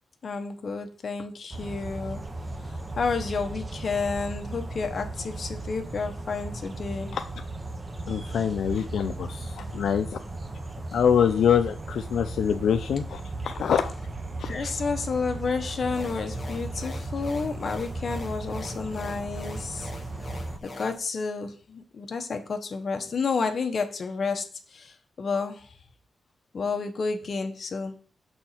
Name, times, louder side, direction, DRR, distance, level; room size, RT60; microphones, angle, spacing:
voice 1, 0.2-2.2 3.0-7.2 14.4-19.9 20.6-25.8 26.5-27.9, left 4 dB, 45° left, 5 dB, 0.9 m, -30 dB
sound 1, 1.5-20.6, right 2 dB, 20° right, 0.8 m, -36 dB
voice 2, 8.1-10.2 10.9-13.9 14.4-14.7, left 8 dB, 80° left, 7 dB, 0.4 m, -25 dB
sound 2, 15.8-21.0, left 2 dB, 30° left, 1.2 m, -43 dB
6.5 x 4.4 x 4.3 m, 0.42 s
wide cardioid pair, 130°, 0 cm